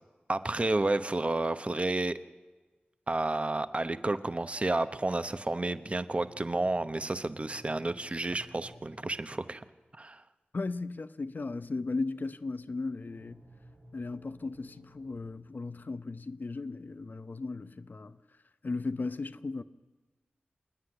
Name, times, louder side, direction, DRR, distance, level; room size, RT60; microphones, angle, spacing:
voice 1, 0.3-2.2 3.1-9.6 10.0-10.2, right 2 dB, 35° right, 1.0 m, -31 dB
sound 1, 6.2-9.7 13.0-15.4, right 1 dB, 75° right, 3.0 m, -56 dB
voice 2, 10.5-13.4 13.9-18.2 18.6-19.6, left 3 dB, 55° left, 0.8 m, -36 dB
27.5 x 9.7 x 9.8 m
wide cardioid pair, 60°, 4 cm